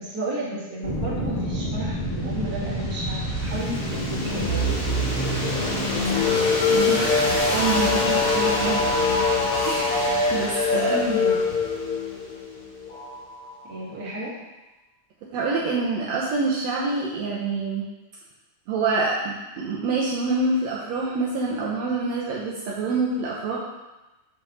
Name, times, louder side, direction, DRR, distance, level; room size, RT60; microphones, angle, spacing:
voice 1, 0.0-4.7 10.7-11.4 13.6-14.3, right 1 dB, 30° right, -7 dB, 1.9 m, -32 dB
sound 1, 0.8-13.6, left 2 dB, 40° left, 1.3 m, -24 dB
voice 2, 6.7-8.8 9.6-11.0 15.3-17.8 18.7-23.6, right 3 dB, 80° right, -5 dB, 1.5 m, -26 dB
8.2 x 3.7 x 6.1 m, 1.0 s
omnidirectional pair, 4.3 m